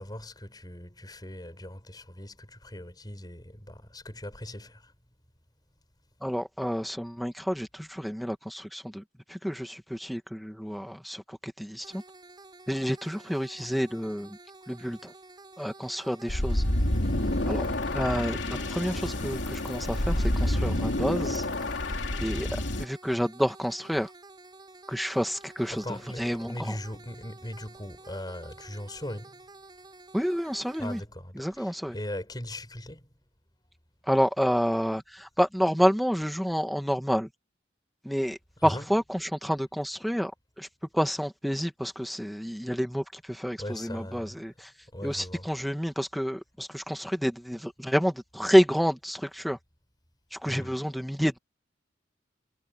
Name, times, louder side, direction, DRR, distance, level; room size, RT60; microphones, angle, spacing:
voice 1, 0.0-4.9 25.7-29.4 30.8-33.1 38.6-38.9 43.6-44.4 44.9-45.5 50.5-50.8, left 1 dB, 20° left, 7.1 m, -39 dB
voice 2, 6.2-9.0 9.3-12.0 12.7-14.4 14.7-15.1 15.6-16.6 17.5-17.6 17.9-21.4 22.2-24.1 24.9-26.7 30.1-31.0 31.4-32.0 34.1-37.3 38.0-40.3 40.6-40.7 40.9-44.7 45.0-49.6 50.3-51.4, equal, ahead, 1.8 m, -29 dB
sound 1, 11.8-31.0, right 3 dB, 25° right, 5.4 m, -51 dB
sound 2, 16.3-22.8, left 1 dB, 85° left, 2.8 m, -28 dB
head